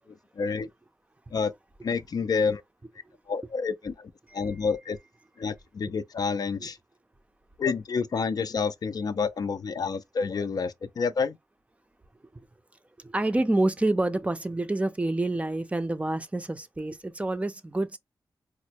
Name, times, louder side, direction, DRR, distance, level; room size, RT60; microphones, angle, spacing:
voice 1, 0.4-0.7 1.3-1.5 1.8-2.6 3.3-5.0 5.4-6.8 7.6-11.4, left 5 dB, 60° left, 0.4 m, -29 dB
voice 2, 4.3-4.6 5.9-6.0 6.6-6.7 13.0-18.0, right 2 dB, 15° right, 0.4 m, -28 dB
4.2 x 2.0 x 2.8 m
wide cardioid pair, 90°, 8 cm